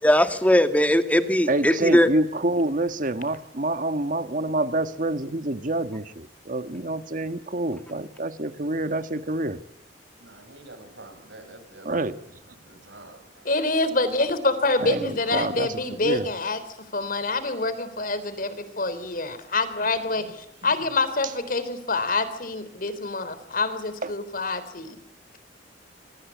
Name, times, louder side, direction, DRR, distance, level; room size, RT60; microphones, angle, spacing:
voice 1, 0.0-2.1, left 1 dB, 10° left, 8 dB, 1.9 m, -19 dB
voice 2, 1.5-9.6 11.8-12.2 14.8-15.7 16.0-16.3 24.0-24.1, right 2 dB, 45° right, 11 dB, 1.6 m, -27 dB
voice 3, 10.2-11.9 12.6-13.5 20.2-20.3 20.6-20.7, right 2 dB, 85° right, 8 dB, 7.3 m, -47 dB
voice 4, 13.5-16.6 16.9-25.0, left 3 dB, 50° left, 13 dB, 3.6 m, -26 dB
26.5 x 24.0 x 8.5 m, 0.77 s
head